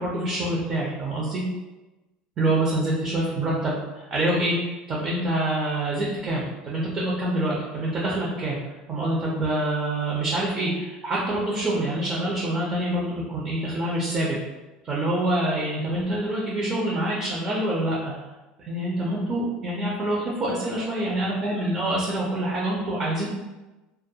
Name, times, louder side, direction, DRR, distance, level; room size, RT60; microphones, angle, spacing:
voice 1, 0.0-1.4 2.4-8.6 8.9-14.4 14.8-18.1 18.6-23.3, right 1 dB, 25° right, -4 dB, 0.4 m, -26 dB
2.2 x 2.1 x 2.7 m, 1.1 s
cardioid pair, 160°, 3 cm